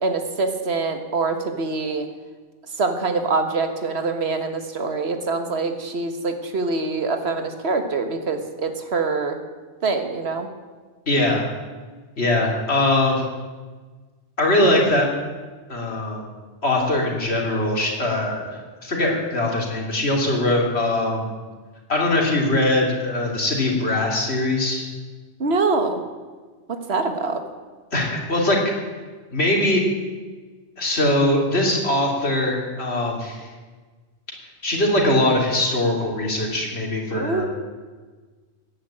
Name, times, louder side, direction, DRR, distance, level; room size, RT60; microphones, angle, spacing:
voice 1, 0.0-2.1 2.8-9.4 9.8-10.5 25.4-26.0 26.7-27.4 37.1-37.4, right 3 dB, 65° right, 7 dB, 1.7 m, -24 dB
voice 2, 11.1-11.4 12.2-13.2 14.4-15.1 15.7-16.3 16.6-21.3 21.9-24.8 27.9-28.6 29.3-29.8 30.8-33.5 34.6-37.5, left 1 dB, 65° left, -1 dB, 3.4 m, -21 dB
15.5 x 9.8 x 8.7 m, 1.4 s
omnidirectional pair, 1.2 m